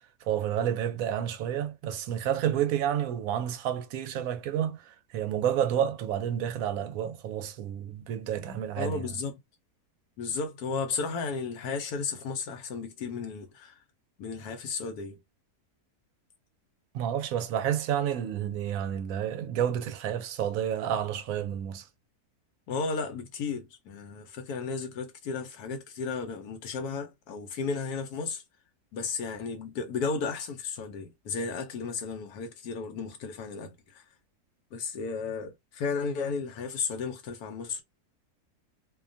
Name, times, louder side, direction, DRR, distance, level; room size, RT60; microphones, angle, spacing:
voice 1, 0.2-9.1 16.9-21.9, right 10 dB, 70° right, 0.9 m, -30 dB
voice 2, 8.8-9.3 10.2-13.8 14.2-15.2 22.7-28.4 28.9-34.0 34.7-37.8, left 4 dB, 80° left, 1.1 m, -34 dB
2.6 x 2.2 x 2.5 m
omnidirectional pair, 1.6 m